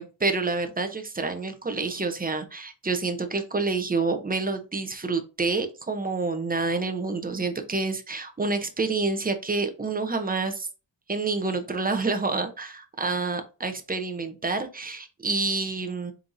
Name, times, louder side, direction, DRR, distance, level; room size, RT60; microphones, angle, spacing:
voice 1, 0.0-10.7 11.1-16.1, right 3 dB, 20° right, 7 dB, 0.7 m, -28 dB
4.4 x 3.9 x 2.6 m, 0.32 s
wide cardioid pair, 110°, 44 cm